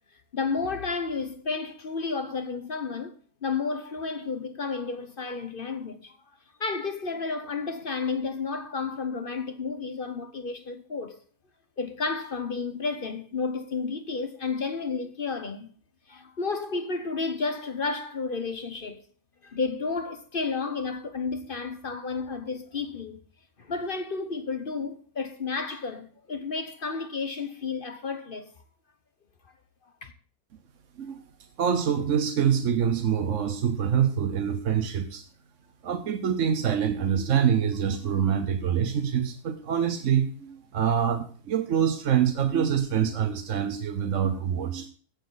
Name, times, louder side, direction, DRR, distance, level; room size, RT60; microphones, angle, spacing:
voice 1, 0.3-3.1 3.4-6.2 6.6-11.2 11.8-15.7 16.1-19.0 19.4-23.2 23.6-28.5 30.0-30.1, left 4 dB, 40° left, 1.0 m, -31 dB
voice 2, 31.6-35.2 35.8-44.9, right 8 dB, 60° right, 1.1 m, -25 dB
16.5 x 7.1 x 4.0 m
omnidirectional pair, 1.6 m